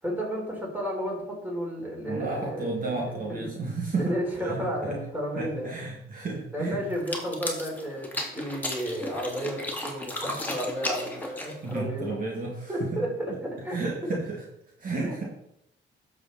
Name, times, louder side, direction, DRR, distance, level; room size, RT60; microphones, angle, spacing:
voice 1, 0.0-3.0 3.3-3.4 3.9-5.7 6.5-12.1 12.7-13.8 14.1-14.2 15.0-15.3, equal, 10° right, -2 dB, 4.3 m, -32 dB
voice 2, 2.1-5.0 5.4-6.8 11.6-13.0 13.3-13.4 13.7-14.4 14.8-15.2, right 3 dB, 45° right, -2 dB, 2.2 m, -32 dB
sound 1, 6.9-11.8, left 1 dB, 10° left, 2.4 m, -34 dB
11.0 x 6.8 x 4.2 m, 0.79 s
cardioid pair, 90°, 20 cm